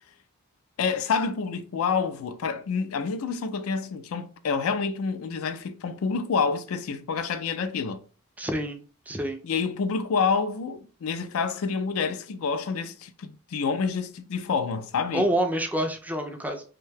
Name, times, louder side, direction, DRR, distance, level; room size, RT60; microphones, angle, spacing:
voice 1, 0.8-8.0 9.4-15.3, left 5 dB, 75° left, 0.4 m, -28 dB
voice 2, 8.4-8.8 9.1-9.4 15.1-16.6, right 1 dB, 5° right, 0.3 m, -27 dB
2.7 x 2.2 x 3.3 m
head